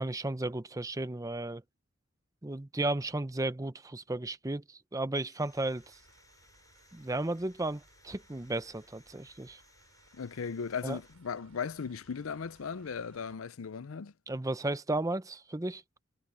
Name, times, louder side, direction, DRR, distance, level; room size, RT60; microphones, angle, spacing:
voice 1, 0.0-1.6 2.4-5.8 6.9-9.6 10.8-11.0 14.3-15.8, right 2 dB, 15° right, 0.7 m, -34 dB
Sawing, 5.1-11.1, left 3 dB, 15° left, 5.3 m, -64 dB
sound 1, 5.5-13.4, right 3 dB, 90° right, 6.6 m, -64 dB
voice 2, 10.1-14.1, left 6 dB, 85° left, 0.6 m, -37 dB
head